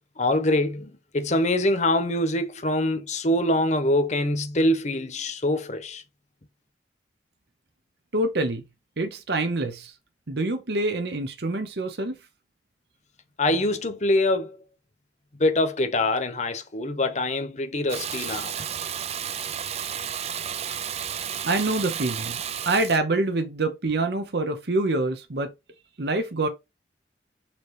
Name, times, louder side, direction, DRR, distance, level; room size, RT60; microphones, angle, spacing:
voice 1, 0.2-6.0 13.4-14.6 15.4-18.6, left 1 dB, 40° left, 1.0 m, -24 dB
voice 2, 8.1-8.6 9.0-9.9 10.3-12.2 21.4-22.4 22.6-25.5 26.0-26.5, right 2 dB, 65° right, 0.8 m, -26 dB
Water tap faucet / Bathtub (filling or washing), 17.9-23.0, right 8 dB, 35° right, 0.4 m, -32 dB
7.1 x 3.1 x 4.8 m
head